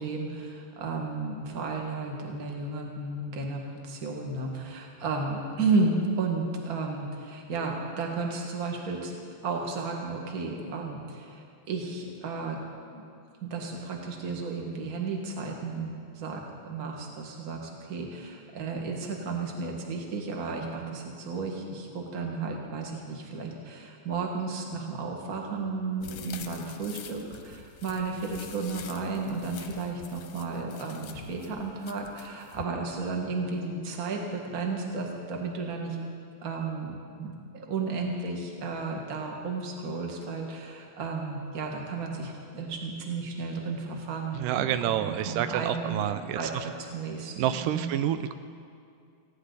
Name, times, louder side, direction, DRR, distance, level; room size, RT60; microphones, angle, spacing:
voice 1, 0.0-9.1 9.4-12.6 12.9-13.0 13.4-36.0 36.4-47.9, right 3 dB, 35° right, 0 dB, 1.6 m, -33 dB
sound 1, 26.0-32.7, left 9 dB, 70° left, 1.8 m, -46 dB
voice 2, 44.3-46.5 47.4-48.3, right 11 dB, 85° right, 11 dB, 2.1 m, -28 dB
19.5 x 16.0 x 4.0 m, 2.4 s
omnidirectional pair, 3.9 m